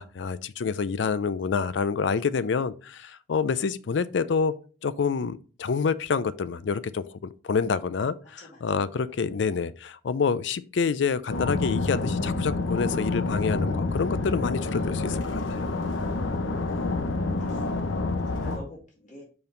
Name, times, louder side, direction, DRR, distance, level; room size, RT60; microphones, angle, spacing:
voice 1, 0.0-4.5 4.8-15.6, left 5 dB, 70° left, 0.4 m, -27 dB
sound 1, 11.3-18.6, left 3 dB, 90° left, 0.8 m, -28 dB
voice 2, 17.3-17.6 18.3-19.2, left 1 dB, 40° left, 2.1 m, -46 dB
5.3 x 4.7 x 3.8 m
head